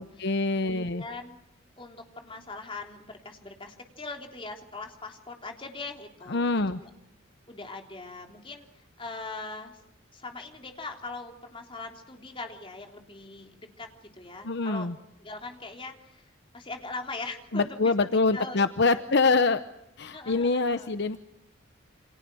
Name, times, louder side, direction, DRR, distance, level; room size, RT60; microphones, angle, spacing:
voice 1, 0.0-1.0 6.3-6.8 14.4-14.9 17.5-19.6 20.0-21.2, left 3 dB, 55° left, 11 dB, 0.9 m, -25 dB
voice 2, 0.5-1.4 1.8-6.5 6.8-6.9 7.5-9.8 10.1-14.9 15.2-18.6 18.8-19.0 20.1-20.9, left 3 dB, 25° left, 3 dB, 3.4 m, -41 dB
29.0 x 26.5 x 6.3 m, 0.84 s
head